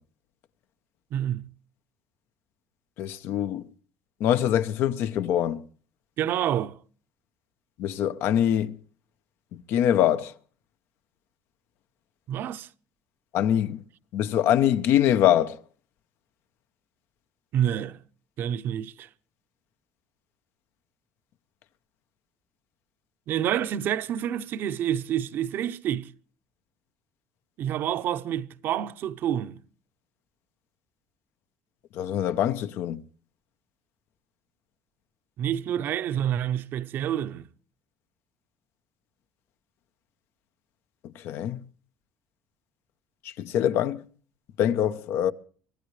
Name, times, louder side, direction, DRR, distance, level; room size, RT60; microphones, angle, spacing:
voice 1, 1.1-1.5 6.2-6.8 12.3-12.7 17.5-18.0 18.4-19.1 23.3-26.1 27.6-29.6 35.4-37.5, right 10 dB, 55° right, 0.8 m, -28 dB
voice 2, 3.0-3.7 4.2-5.6 7.8-8.8 9.5-10.3 13.3-13.8 14.1-15.6 31.9-33.0 41.2-41.6 43.2-44.0 44.6-45.3, left 10 dB, 65° left, 0.9 m, -24 dB
25.0 x 15.0 x 3.3 m
cardioid pair, 130°, 4 cm